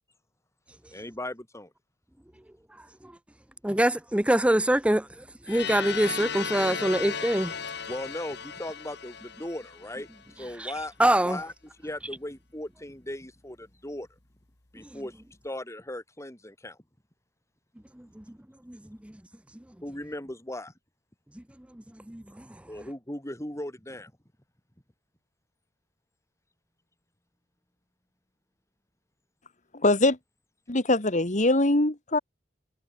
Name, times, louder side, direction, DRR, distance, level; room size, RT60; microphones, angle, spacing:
voice 1, 0.9-1.7 7.9-10.1 10.3-10.9 11.2-11.5 11.8-14.1 14.7-16.8 19.8-20.7 22.7-24.1, left 1 dB, 15° left, 6.0 m, -38 dB
voice 2, 3.6-7.5 10.6-10.7 11.0-11.4 18.0-18.2 18.7-19.1 21.4-21.5 21.7-22.5, right 1 dB, 5° right, 0.6 m, -25 dB
sound 1, 5.5-10.3, left 6 dB, 65° left, 2.6 m, -36 dB
voice 3, 29.8-30.2 30.7-32.2, left 2 dB, 40° left, 2.4 m, -22 dB
head